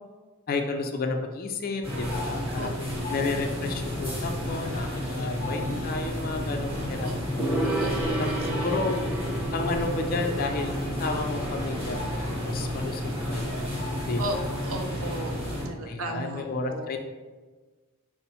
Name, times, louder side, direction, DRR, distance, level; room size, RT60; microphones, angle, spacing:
voice 1, 0.5-2.8 3.1-7.4 8.2-9.0 9.5-13.5 14.1-14.6 15.9-17.0, left 3 dB, 40° left, 3 dB, 0.4 m, -32 dB
sound 1, 1.8-15.7, left 1 dB, 25° right, 1.1 m, -31 dB
sound 2, 2.2-12.5, equal, 45° right, 1.0 m, -49 dB
Gong, 7.4-14.8, right 1 dB, 5° right, 0.5 m, -34 dB
voice 2, 7.6-8.5 14.2-14.4 14.6-15.4 15.6-16.9, right 1 dB, 70° right, 3 dB, 0.6 m, -35 dB
5.6 x 2.0 x 4.0 m, 1.3 s
head